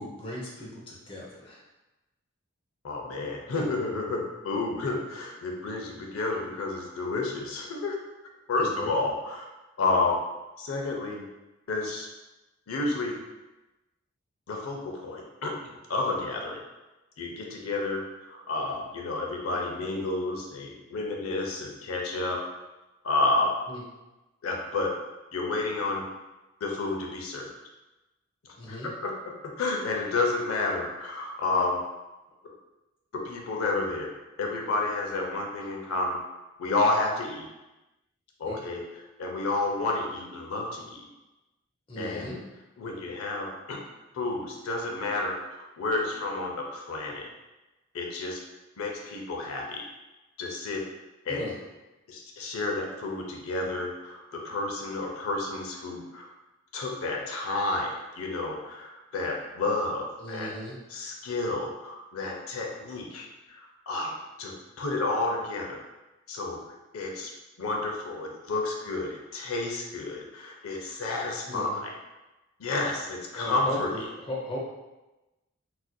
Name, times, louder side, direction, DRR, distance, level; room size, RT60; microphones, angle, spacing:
voice 1, 0.0-1.6 8.6-8.9 23.7-23.8 28.6-28.9 38.4-38.6 41.9-42.5 51.3-51.6 60.2-60.8 71.5-71.8 73.3-74.6, left 1 dB, 25° left, -4 dB, 0.6 m, -37 dB
voice 2, 2.8-8.0 8.5-9.4 9.8-10.2 10.6-11.3 11.7-12.1 12.7-13.2 14.5-15.5 15.9-16.6 17.2-22.4 23.0-23.5 24.4-24.9 25.3-26.0 26.6-27.5 28.7-31.8 33.1-34.1 34.4-36.2 36.6-37.5 38.4-38.8 39.2-41.0 42.0-42.3 42.8-43.8 44.1-47.3 47.9-48.4 48.8-49.8 50.4-50.8 51.3-51.5 52.1-56.3 56.7-60.5 60.9-63.2 63.6-65.8 66.3-66.6 66.9-67.3 67.6-71.9 72.6-73.9, left 2 dB, 75° left, 0 dB, 0.5 m, -30 dB
4.0 x 2.5 x 2.2 m, 1.1 s
head